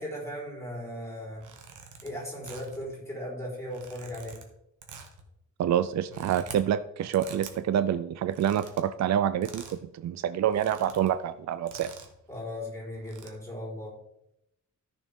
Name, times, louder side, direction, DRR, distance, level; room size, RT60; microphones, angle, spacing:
voice 1, 0.0-1.5 2.0-4.3 12.3-13.9, left 1 dB, 10° left, -4 dB, 4.3 m, -37 dB
sound 1, 1.3-2.1 2.4-2.9 3.6-4.5 4.8-5.2 5.9-6.6 7.1-7.6 8.2-8.8 9.4-9.8 10.1-10.2 10.4-11.1 11.7-12.2 12.9-13.3, right 5 dB, 80° right, 1.5 m, -46 dB
voice 2, 5.6-11.9, right 10 dB, 60° right, 13 dB, 0.4 m, -27 dB
13.5 x 6.6 x 3.6 m, 0.80 s
wide cardioid pair, 165°, 31 cm